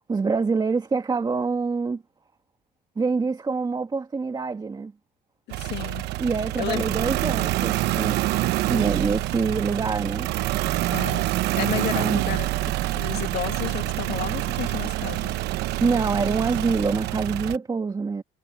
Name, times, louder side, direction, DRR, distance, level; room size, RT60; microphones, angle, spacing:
voice 1, 0.1-2.0 3.0-4.9 6.2-10.3 11.9-12.2 15.8-18.2, right 4 dB, 25° right, 2.0 m, -26 dB
voice 2, 5.5-6.1 6.6-6.8 10.9-12.5 12.9-15.5, left 14 dB, 80° left, 2.1 m, -32 dB
sound 1, 5.5-17.6, right 17 dB, 85° right, 0.9 m, -26 dB
cardioid pair, 110°, 17 cm